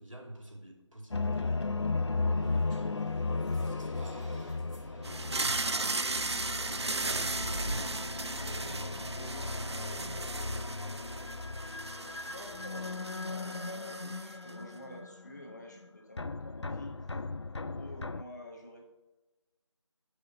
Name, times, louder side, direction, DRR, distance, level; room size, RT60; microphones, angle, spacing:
voice 1, 0.0-3.1 3.5-10.5, right 1 dB, 90° right, 1 dB, 2.5 m, -49 dB
sound 1, 1.1-15.9 16.2-18.2, left 3 dB, 60° left, 0.5 m, -36 dB
sound 2, 2.4-11.3, equal, 10° right, 2.0 m, -48 dB
sound 3, 5.0-14.5, right 3 dB, 55° right, 0.5 m, -36 dB
voice 2, 12.2-12.9 13.2-16.9 17.5-18.9, left 1 dB, 35° left, 1 dB, 1.1 m, -48 dB
12.5 x 4.9 x 4.0 m, 1.1 s
figure-of-eight pair, 170°, 16 cm